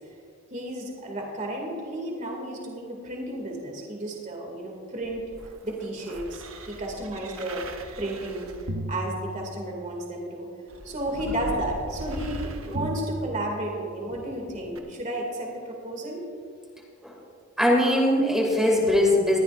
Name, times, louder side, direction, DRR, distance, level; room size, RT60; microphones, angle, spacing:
voice 1, 0.5-5.2 5.6-7.7 8.0-8.5 8.9-10.5 10.8-16.3, right 1 dB, 35° right, 0 dB, 2.4 m, -32 dB
sound 1, 5.0-9.9 10.7-14.0 14.7-14.8, right 1 dB, 75° right, 1.1 m, -37 dB
voice 2, 17.6-19.4, left 1 dB, 5° right, -2 dB, 2.3 m, -21 dB
21.0 x 14.0 x 2.5 m, 2.2 s
head